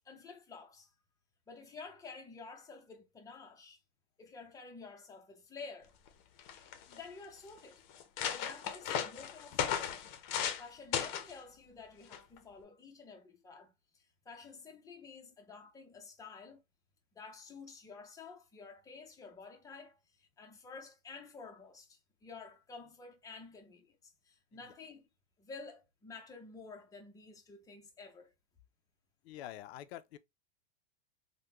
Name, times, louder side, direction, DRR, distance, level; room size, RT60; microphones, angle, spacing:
voice 1, 0.0-0.9 1.5-3.8 4.2-5.9 6.9-7.8 8.3-10.1 10.3-16.6 17.1-24.0 24.2-25.1 25.4-28.3, left 4 dB, 10° left, 0.7 m, -51 dB
sound 1, 6.1-6.2 6.4-7.0 7.6-7.7 7.9-10.6 10.9-11.3 12.1-12.4, left 9 dB, 45° left, 0.7 m, -36 dB
voice 2, 29.2-30.2, left 12 dB, 85° left, 0.5 m, -46 dB
3.5 x 2.2 x 2.8 m
supercardioid pair, 145°, 31 cm